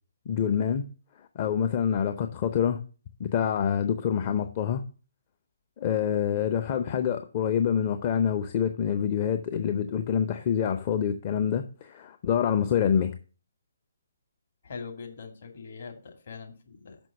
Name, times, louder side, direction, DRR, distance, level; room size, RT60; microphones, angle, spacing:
voice 1, 0.3-0.8 1.3-2.8 3.2-4.8 5.8-13.1, left 8 dB, 35° left, 0.7 m, -26 dB
voice 2, 14.6-17.0, left 5 dB, 55° left, 2.2 m, -42 dB
6.2 x 6.2 x 6.8 m
figure-of-eight pair, 140°, 0 cm